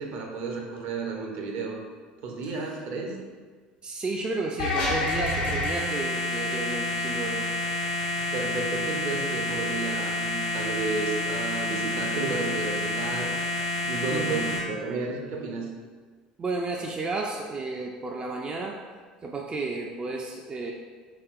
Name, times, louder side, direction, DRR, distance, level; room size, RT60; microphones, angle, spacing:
voice 1, 0.0-1.8 2.2-3.2 8.2-13.3 13.7-15.7, right 4 dB, 55° right, 0 dB, 0.7 m, -32 dB
voice 2, 3.8-7.5 14.1-14.6 16.4-18.8 19.2-20.7, right 3 dB, 25° right, 0 dB, 0.4 m, -32 dB
sound 1, 4.6-14.6, left 2 dB, 65° left, 1.0 m, -29 dB
4.1 x 3.5 x 2.4 m, 1.5 s
figure-of-eight pair, 65°, 4 cm